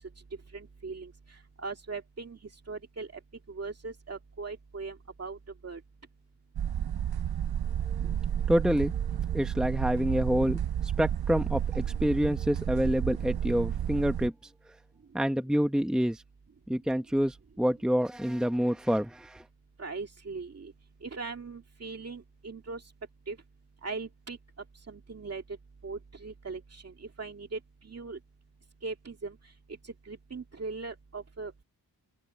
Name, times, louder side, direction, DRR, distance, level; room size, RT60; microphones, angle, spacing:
voice 1, 0.5-2.4 2.7-3.1 3.5-5.4 5.6-5.8 19.8-20.7 21.0-22.8 23.3-23.4 23.8-24.4 24.9-25.4 25.8-28.2 28.8-29.4 29.8-31.6, right 4 dB, 40° right, 2.2 m, -40 dB
sound 1, 6.6-14.3, right 9 dB, 70° right, 0.7 m, -31 dB
voice 2, 8.5-8.9 9.3-14.3 15.1-16.2 16.7-19.4, equal, ahead, 0.9 m, -27 dB
open air
wide cardioid pair, 145°, 38 cm